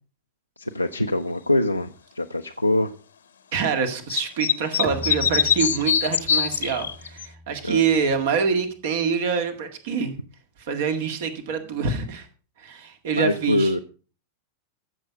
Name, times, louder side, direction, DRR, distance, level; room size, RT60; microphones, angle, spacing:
voice 1, 0.6-3.0 7.6-7.8 13.1-13.8, left 1 dB, 90° left, 3 dB, 0.5 m, -24 dB
voice 2, 3.5-10.1 10.6-12.3 12.6-13.7, right 6 dB, 55° right, 7 dB, 1.9 m, -25 dB
sound 1, 4.1-7.3, left 8 dB, 70° left, 0.9 m, -22 dB
Bowed string instrument, 4.8-8.3, right 1 dB, 20° right, 1.4 m, -40 dB
13.5 x 7.1 x 5.1 m, 0.37 s
figure-of-eight pair, 90°, 0 cm